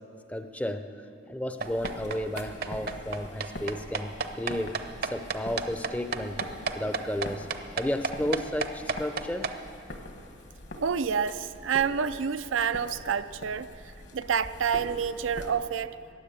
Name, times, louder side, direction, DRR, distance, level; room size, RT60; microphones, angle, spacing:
voice 1, 0.3-0.8 1.3-6.4 6.7-7.5 7.8-9.5, left 1 dB, 5° left, 8 dB, 0.5 m, -32 dB
sound 1, 1.6-15.5, left 1 dB, 60° left, 1.4 m, -44 dB
sound 2, 1.6-9.5, right 4 dB, 50° right, 0.7 m, -32 dB
voice 2, 10.8-13.7 14.1-15.9, right 7 dB, 85° right, 12 dB, 0.5 m, -28 dB
15.0 x 10.0 x 8.8 m, 2.6 s
head